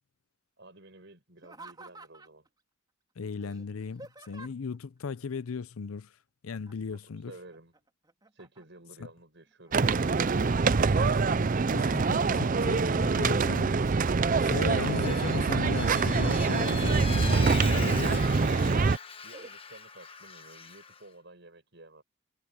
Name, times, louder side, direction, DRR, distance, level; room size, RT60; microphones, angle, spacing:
voice 1, 0.6-2.5 6.9-7.7 8.3-11.4 19.2-22.0, right 2 dB, 55° right, 6.0 m, -52 dB
Laughter, 1.4-2.5 3.4-4.8 6.5-7.0 7.3-8.9 9.5-10.1 10.5-11.8 12.2-12.8 13.3-14.0 14.5-15.4 16.5-17.3 17.8-17.9 18.5-18.7 19.3-19.5, right 2 dB, 20° right, 3.7 m, -52 dB
voice 2, 3.2-6.1 6.4-7.3 11.7-14.0 14.3-18.2, left 5 dB, 85° left, 0.5 m, -36 dB
sound 1, 9.7-19.0, right 4 dB, 40° right, 0.5 m, -25 dB
Vehicle, 14.6-21.0, left 5 dB, 25° left, 1.3 m, -41 dB
head